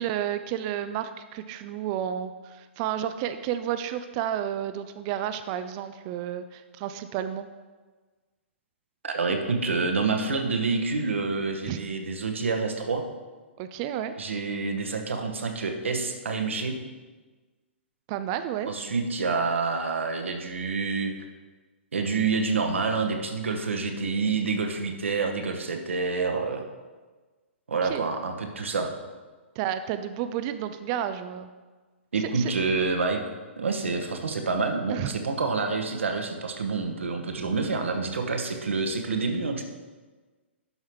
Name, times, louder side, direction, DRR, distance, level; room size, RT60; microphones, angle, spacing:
voice 1, 0.0-7.5 11.7-11.8 13.6-14.1 18.1-18.7 27.8-28.1 29.6-31.5 32.2-32.5 34.9-35.1, right 10 dB, 35° right, 10 dB, 0.4 m, -31 dB
voice 2, 9.0-13.0 14.2-16.8 18.7-21.1 21.9-26.6 27.7-28.9 32.1-33.2 33.6-39.6, right 4 dB, 75° right, 4 dB, 1.1 m, -27 dB
11.5 x 5.6 x 3.1 m, 1.3 s
figure-of-eight pair, 120°, 7 cm